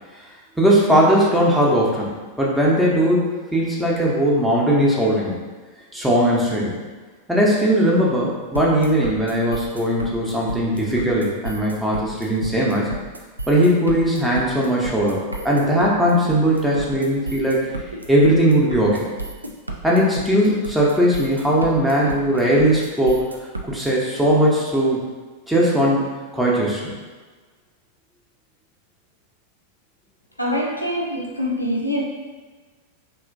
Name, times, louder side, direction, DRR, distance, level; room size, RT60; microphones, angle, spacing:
voice 1, 0.6-5.4 5.9-6.8 7.3-12.9 13.5-17.7 18.1-19.1 19.8-23.3 23.7-25.0 25.5-26.0 26.3-26.9, equal, 5° right, -5 dB, 0.8 m, -19 dB
sound 1, 8.6-23.9, right 2 dB, 85° right, 0.3 m, -32 dB
voice 2, 30.4-32.0, equal, 85° left, -1 dB, 0.4 m, -24 dB
3.3 x 2.9 x 2.5 m, 1.4 s
figure-of-eight pair, 90°, 0 cm